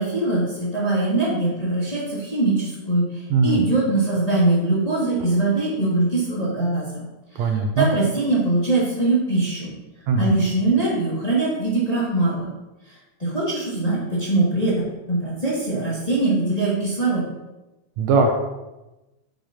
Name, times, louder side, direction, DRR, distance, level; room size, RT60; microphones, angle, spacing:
voice 1, 0.0-3.1 3.4-7.1 7.4-9.7 10.2-12.5 13.2-17.2, right 2 dB, 15° left, -8 dB, 1.9 m, -22 dB
voice 2, 3.3-3.6 7.4-7.9 10.1-10.3 18.0-18.3, right 4 dB, 75° right, 3 dB, 1.9 m, -19 dB
9.1 x 7.1 x 2.9 m, 1.0 s
omnidirectional pair, 3.4 m